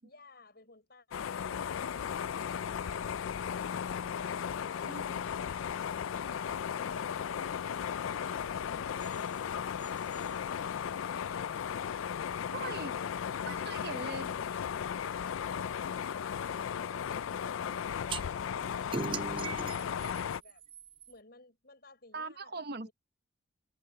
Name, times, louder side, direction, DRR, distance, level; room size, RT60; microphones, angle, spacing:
voice 1, 0.0-3.8 4.4-5.3 21.1-22.9, left 2 dB, 50° left, 6.9 m, -57 dB
sound 1, 1.1-20.4, left 8 dB, 90° left, 0.4 m, -36 dB
sound 2, 9.0-11.2, right 3 dB, 10° right, 7.6 m, -59 dB
voice 2, 12.5-12.9 13.5-14.3 22.1-22.9, right 3 dB, 50° right, 0.9 m, -40 dB
sound 3, 18.1-18.2 18.9-21.1, right 4 dB, 25° right, 0.4 m, -38 dB
head